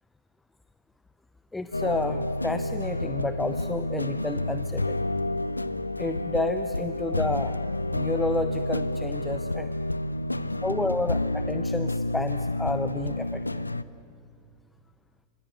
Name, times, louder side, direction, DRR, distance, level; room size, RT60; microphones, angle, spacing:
voice 1, 1.5-5.1 6.0-7.6 7.9-9.7 10.6-13.6, left 2 dB, 10° left, 11 dB, 0.8 m, -31 dB
sound 1, 1.7-13.8, left 2 dB, 85° left, 0.6 m, -29 dB
26.0 x 24.5 x 8.3 m, 2.3 s
figure-of-eight pair, 90°, 0 cm